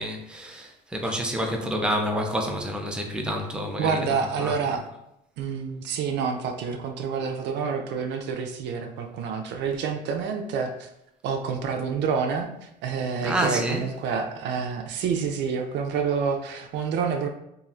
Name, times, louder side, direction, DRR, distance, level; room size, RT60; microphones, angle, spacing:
voice 1, 0.0-4.0 4.4-4.6 13.2-13.9, equal, 5° right, 3 dB, 0.5 m, -28 dB
voice 2, 3.8-4.8 5.4-10.9 11.2-17.3, right 6 dB, 60° right, 5 dB, 0.4 m, -28 dB
2.9 x 2.4 x 2.3 m, 0.82 s
hypercardioid pair, 70°, 20 cm